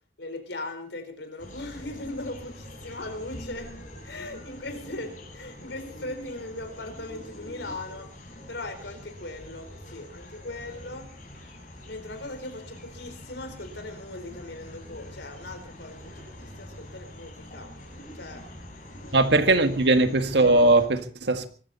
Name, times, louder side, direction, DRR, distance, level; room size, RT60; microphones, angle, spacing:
voice 1, 0.2-8.1 8.5-11.1 11.9-16.1 16.4-17.7 18.1-18.4 19.0-19.3, left 2 dB, 85° left, 4.4 m, -39 dB
sound 1, 1.4-20.9, equal, 45° left, 6.8 m, -44 dB
voice 2, 19.1-21.5, right 2 dB, 75° right, 1.8 m, -20 dB
24.0 x 14.0 x 4.2 m
head